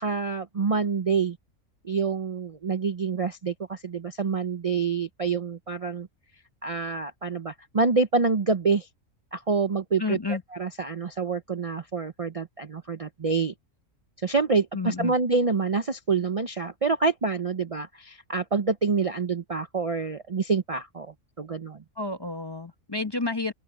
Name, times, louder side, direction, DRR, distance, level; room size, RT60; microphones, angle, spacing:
voice 1, 0.0-1.4 1.8-6.1 6.6-8.9 9.3-13.5 14.2-21.8, right 4 dB, 35° right, 0.6 m, -27 dB
voice 2, 10.0-10.4 14.7-15.1 22.0-23.5, left 3 dB, 20° left, 0.8 m, -30 dB
open air
omnidirectional pair, 1.3 m